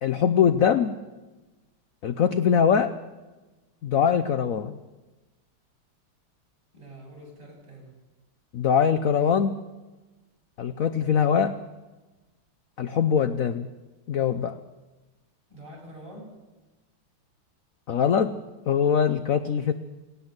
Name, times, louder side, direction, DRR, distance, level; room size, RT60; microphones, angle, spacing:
voice 1, 0.0-1.0 2.0-2.9 3.8-4.8 8.5-9.6 10.6-11.5 12.8-13.7 14.1-14.5 17.9-18.3 18.7-19.7, left 7 dB, 60° left, 11 dB, 0.9 m, -22 dB
voice 2, 6.7-7.9 15.5-16.3, right 1 dB, 35° right, -1 dB, 8.3 m, -45 dB
18.5 x 18.0 x 8.0 m, 1.1 s
omnidirectional pair, 2.3 m